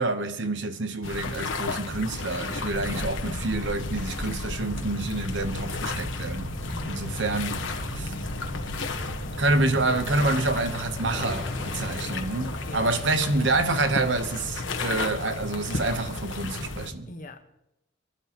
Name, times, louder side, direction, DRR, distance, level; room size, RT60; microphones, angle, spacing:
voice 1, 0.0-6.5 6.9-7.6 7.9-8.1 9.4-17.1, right 2 dB, 70° right, 1.0 m, -27 dB
sound 1, 1.0-16.9, left 3 dB, 85° left, 1.3 m, -33 dB
sound 2, 4.6-14.3, right 1 dB, 30° right, 4.7 m, -39 dB
voice 2, 6.7-7.2 9.5-9.9 11.7-12.9 17.1-17.4, left 1 dB, 45° left, 1.3 m, -43 dB
23.0 x 12.0 x 3.0 m
head